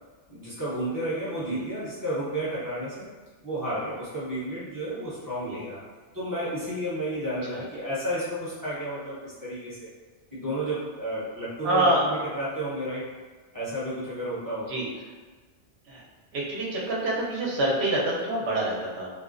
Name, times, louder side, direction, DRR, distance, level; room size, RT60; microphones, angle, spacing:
voice 1, 0.3-3.1 3.4-5.8 6.1-9.8 10.3-13.0 13.5-14.7, right 1 dB, 20° right, -11 dB, 0.6 m, -32 dB
voice 2, 11.6-12.0 14.7-14.9 15.9-16.0 16.3-19.1, right 1 dB, 70° right, -4 dB, 0.9 m, -26 dB
2.4 x 2.0 x 2.4 m, 1.4 s
omnidirectional pair, 1.2 m